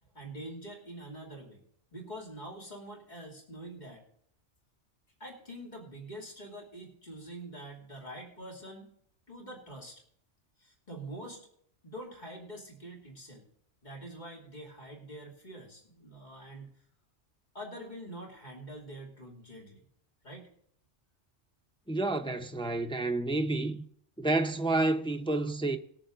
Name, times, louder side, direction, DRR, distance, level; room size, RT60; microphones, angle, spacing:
voice 1, 0.0-1.6 1.9-4.0 5.2-8.9 9.3-10.0 10.6-11.4 11.8-13.4 13.8-16.7 17.5-19.8 20.2-20.5, right 1 dB, 40° left, 2.9 m, -45 dB
voice 2, 21.9-23.8 24.2-25.8, right 2 dB, 5° left, 0.6 m, -29 dB
20.5 x 7.1 x 3.9 m
omnidirectional pair, 1.2 m